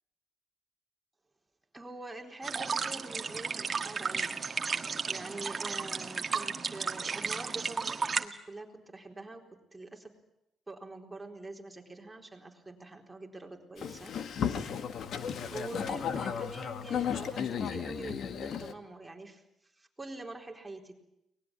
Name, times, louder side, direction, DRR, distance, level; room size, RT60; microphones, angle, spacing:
voice 1, 1.7-4.5 5.1-9.4 9.7-10.1 10.7-14.1 15.2-21.0, right 2 dB, 15° right, 2 dB, 4.4 m, -45 dB
sound 1, 2.4-8.2, right 5 dB, 35° right, 1.7 m, -34 dB
Boat Water vehicle, 13.8-18.7, left 7 dB, 65° left, 1.8 m, -34 dB
24.0 x 20.0 x 9.0 m, 0.84 s
cardioid pair, 90°, 0 cm